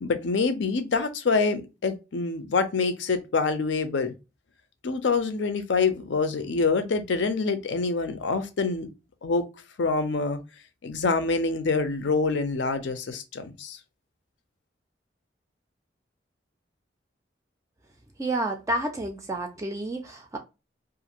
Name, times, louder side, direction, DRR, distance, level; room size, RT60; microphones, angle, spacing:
voice 1, 0.0-4.1 4.8-8.9 9.2-9.5 9.8-10.4 10.8-13.8, left 4 dB, 85° left, 0.5 m, -26 dB
voice 2, 18.2-20.4, right 1 dB, 15° right, 0.3 m, -30 dB
2.5 x 2.5 x 2.8 m
head